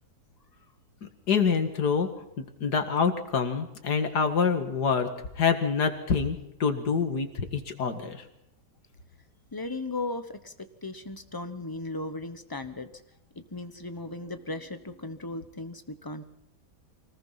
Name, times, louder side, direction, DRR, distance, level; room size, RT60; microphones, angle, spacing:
voice 1, 1.3-2.1 2.4-5.1 5.4-8.2, left 5 dB, 70° left, 7 dB, 2.4 m, -26 dB
voice 2, 9.5-10.5 10.8-12.9 13.3-16.3, left 2 dB, 15° left, 9 dB, 0.8 m, -36 dB
25.0 x 19.0 x 5.8 m, 0.81 s
omnidirectional pair, 1.8 m